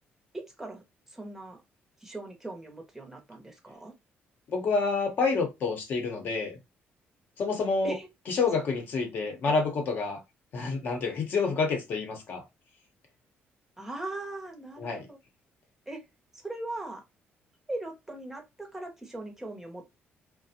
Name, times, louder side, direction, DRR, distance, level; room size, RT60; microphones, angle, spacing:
voice 1, 0.3-0.8 1.1-1.6 2.0-3.9 7.8-8.1 13.8-15.2 15.9-16.0 16.4-17.0 17.7-19.8, right 2 dB, 10° right, 0.6 m, -39 dB
voice 2, 4.5-6.6 7.4-7.9 8.3-10.2 10.5-12.4 14.8-15.1, left 4 dB, 50° left, 0.7 m, -28 dB
2.4 x 2.1 x 2.7 m
cardioid pair, 155°, 4 cm